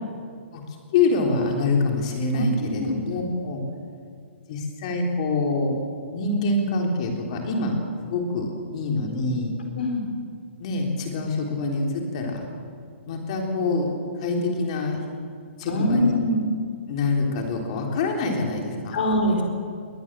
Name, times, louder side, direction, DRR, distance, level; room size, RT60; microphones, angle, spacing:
voice 1, 0.9-3.6 4.5-5.8 6.1-7.8 8.1-9.6 10.6-12.4 13.1-13.9 14.2-15.0 15.6-16.1 16.9-19.0, left 3 dB, 30° left, 2 dB, 3.5 m, -25 dB
voice 2, 2.3-3.0 9.8-10.0 15.7-16.4 18.9-19.4, left 1 dB, 50° left, 5 dB, 4.4 m, -23 dB
21.5 x 18.0 x 7.5 m, 2.2 s
hypercardioid pair, 175°, 7 cm